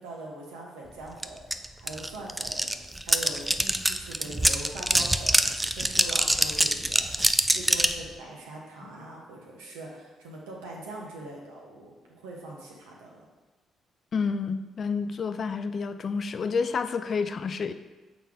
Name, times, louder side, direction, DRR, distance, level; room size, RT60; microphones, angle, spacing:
voice 1, 0.0-2.7 3.1-3.4 3.8-5.4 5.7-7.1 7.5-13.2, right 2 dB, 75° right, -2 dB, 1.1 m, -42 dB
sound 1, 1.2-1.3 1.5-8.0, right 1 dB, 15° right, 0.4 m, -24 dB
voice 2, 14.1-17.7, left 5 dB, 50° left, 10 dB, 0.4 m, -29 dB
7.0 x 4.1 x 3.7 m, 1.2 s
figure-of-eight pair, 40°, 0 cm